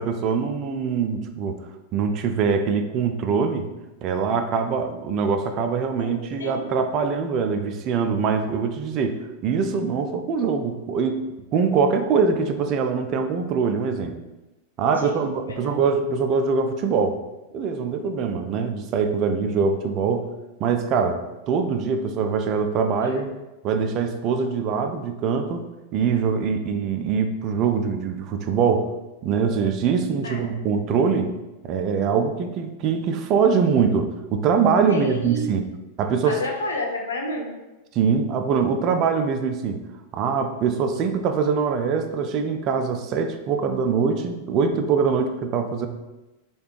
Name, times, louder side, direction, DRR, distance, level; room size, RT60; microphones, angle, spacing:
voice 1, 0.0-1.6 1.9-3.7 4.0-11.2 11.5-14.2 14.8-17.2 17.5-20.3 20.6-23.3 23.6-25.7 25.9-28.9 29.2-31.3 31.6-35.7 36.0-36.4 37.9-39.8 40.1-45.9, right 5 dB, 35° right, 6 dB, 0.3 m, -23 dB
voice 2, 6.0-6.6 15.0-15.8 23.0-23.2 30.2-30.5 34.9-35.5 36.2-37.5, left 1 dB, 70° left, 0 dB, 0.6 m, -31 dB
3.2 x 2.4 x 3.0 m, 1.0 s
figure-of-eight pair, 90°, 0 cm